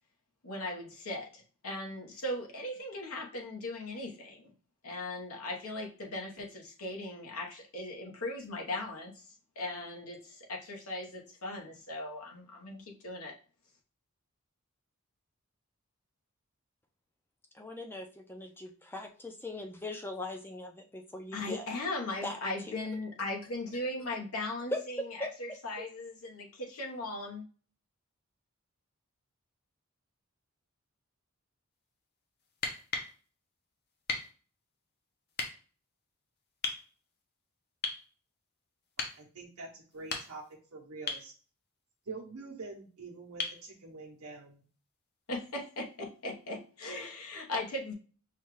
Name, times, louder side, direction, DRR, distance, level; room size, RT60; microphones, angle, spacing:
voice 1, 0.4-4.5 4.8-9.3 9.6-13.3 21.3-25.1 25.4-27.4 45.3-47.9, left 2 dB, 75° left, 0 dB, 1.1 m, -38 dB
voice 2, 17.5-21.7 22.2-22.9 24.7-24.8 25.2-25.3, left 1 dB, 10° left, 4 dB, 0.4 m, -40 dB
sound 1, 32.5-33.1 34.1-34.3 35.3-35.5 36.6-36.8 37.8-38.1 39.0-39.2 39.9-40.5 41.1-41.3 43.4-43.6 45.5-45.6, left 4 dB, 45° left, 0.7 m, -35 dB
voice 3, 39.0-40.4 40.7-41.3 42.1-44.6, right 3 dB, 75° right, -2 dB, 0.8 m, -45 dB
5.6 x 2.3 x 3.1 m, 0.39 s
head